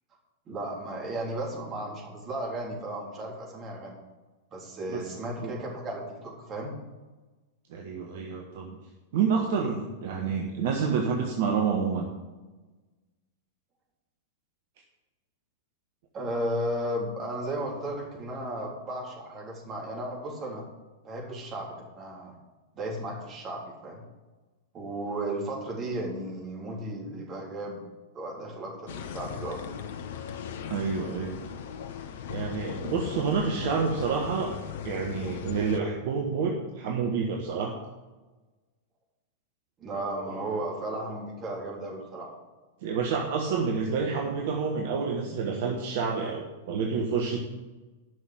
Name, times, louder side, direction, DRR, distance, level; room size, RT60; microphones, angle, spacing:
voice 1, 0.5-4.0 4.5-6.7 16.1-20.6 21.0-22.3 22.7-24.0 24.7-27.8 28.1-29.8 39.8-42.4, right 1 dB, 25° right, -2 dB, 3.6 m, -34 dB
voice 2, 7.7-8.8 9.1-12.1 30.7-31.4 32.3-34.5 34.8-37.8 42.8-47.4, right 5 dB, 50° right, 1 dB, 1.3 m, -28 dB
sound 1, 28.9-35.8, left 8 dB, 55° left, 0.8 m, -38 dB
11.0 x 6.4 x 7.8 m, 1.2 s
figure-of-eight pair, 95°, 0 cm